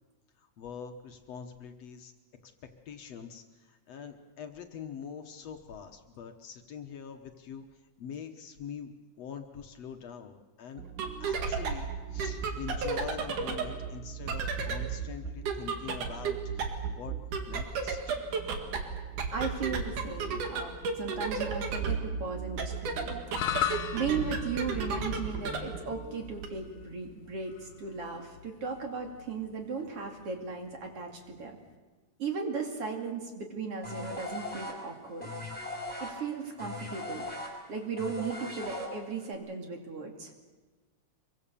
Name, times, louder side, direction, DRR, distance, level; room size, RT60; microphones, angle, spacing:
voice 1, 0.4-2.1 2.4-2.5 2.9-7.7 8.0-8.9 9.2-10.8 11.2-17.1 17.5-18.2, left 7 dB, 60° left, 5 dB, 2.2 m, -44 dB
sound 1, 10.8-26.5, right 5 dB, 80° right, 3.6 m, -34 dB
voice 2, 19.3-23.2 23.9-31.6 32.2-35.3 36.0-37.3 37.7-40.3, right 5 dB, 50° right, 3 dB, 3.3 m, -36 dB
sound 2, 23.3-31.8, left 10 dB, 90° left, 2.5 m, -39 dB
sound 3, 33.8-39.3, left 1 dB, 5° left, 6.3 m, -39 dB
25.5 x 23.5 x 7.0 m, 1.3 s
omnidirectional pair, 3.5 m